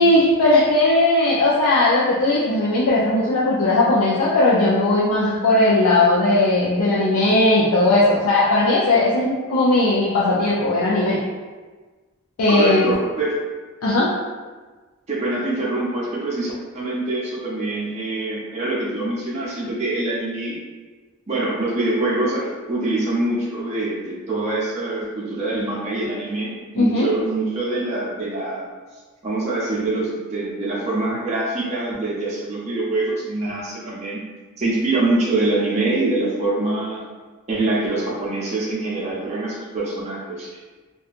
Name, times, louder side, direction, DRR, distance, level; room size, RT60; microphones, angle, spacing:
voice 1, 0.0-11.2 12.4-12.9 13.8-14.1 26.8-27.1, left 2 dB, 75° left, -7 dB, 0.4 m, -17 dB
voice 2, 12.5-13.3 15.1-20.6 21.3-28.6 29.2-34.2 34.6-37.0 37.5-40.5, right 2 dB, 30° right, -6 dB, 0.5 m, -24 dB
2.8 x 2.2 x 2.4 m, 1.3 s
head